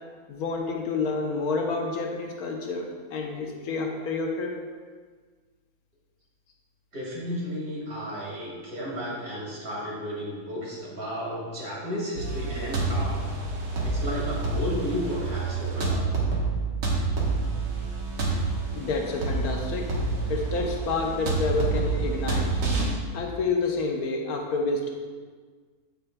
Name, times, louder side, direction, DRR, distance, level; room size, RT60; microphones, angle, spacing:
voice 1, 0.3-4.5 18.8-19.9 20.3-22.5 23.1-24.9, left 3 dB, 80° left, 1 dB, 1.3 m, -29 dB
voice 2, 6.9-13.2 13.8-16.0, equal, 70° right, -6 dB, 2.6 m, -33 dB
sound 1, 12.2-22.9, right 3 dB, 90° right, 1.7 m, -28 dB
8.1 x 8.0 x 2.2 m, 1.5 s
omnidirectional pair, 1.6 m